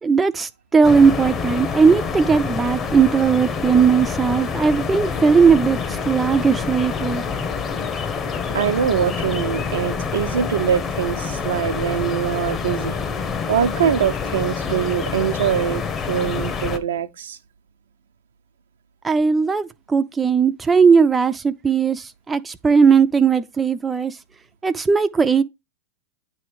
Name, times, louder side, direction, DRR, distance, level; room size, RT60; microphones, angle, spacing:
voice 1, 0.0-5.8 6.1-7.2 19.0-24.2 24.6-25.4, right 5 dB, 15° right, 0.5 m, -17 dB
sound 1, 0.8-16.8, left 5 dB, 30° left, 0.9 m, -27 dB
voice 2, 8.5-13.0 13.5-17.4, right 8 dB, 80° right, 0.7 m, -23 dB
9.4 x 3.2 x 4.8 m
hypercardioid pair, 105°, 0 cm